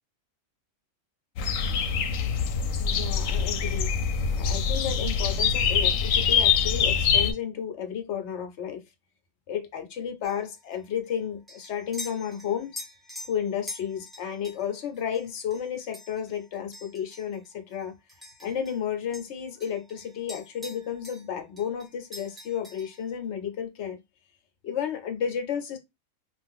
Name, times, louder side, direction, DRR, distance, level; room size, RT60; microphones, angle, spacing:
sound 1, 1.4-7.3, left 6 dB, 90° left, 1.0 m, -24 dB
voice 1, 2.8-3.9 4.4-8.8 9.5-12.8 13.3-18.0 18.4-24.0 24.6-25.8, left 8 dB, 65° left, 1.0 m, -32 dB
sound 2, 10.2-18.9 19.1-21.3 21.6-23.1, left 2 dB, ahead, 0.6 m, -45 dB
2.5 x 2.4 x 3.5 m
omnidirectional pair, 1.3 m